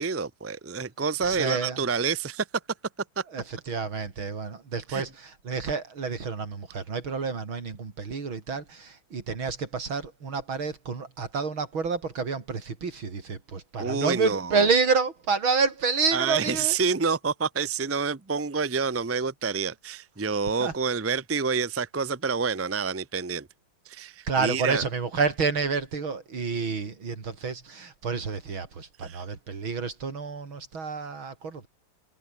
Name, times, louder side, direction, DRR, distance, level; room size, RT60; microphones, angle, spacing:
voice 1, 0.0-2.4 3.2-3.3 4.9-5.0 13.8-14.6 16.1-23.5 23.9-24.8 29.0-29.2, right 5 dB, 20° right, 0.3 m, -28 dB
voice 2, 1.2-1.8 3.3-16.8 20.6-20.7 24.3-31.7, right 5 dB, 75° right, 4.2 m, -29 dB
omnidirectional pair, 2.3 m